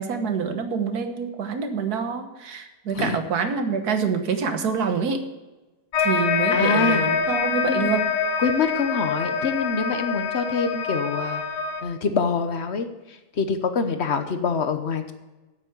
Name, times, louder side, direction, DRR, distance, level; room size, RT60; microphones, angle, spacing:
voice 1, 0.0-5.2 6.0-8.0, right 6 dB, 65° right, 7 dB, 1.7 m, -26 dB
sound 1, 5.9-11.8, left 5 dB, 80° left, 1.4 m, -25 dB
voice 2, 6.5-7.0 7.7-7.9 8.4-11.4 11.8-12.9 13.4-15.1, left 5 dB, 45° left, 8 dB, 1.0 m, -25 dB
9.0 x 8.4 x 6.6 m, 1.1 s
omnidirectional pair, 1.8 m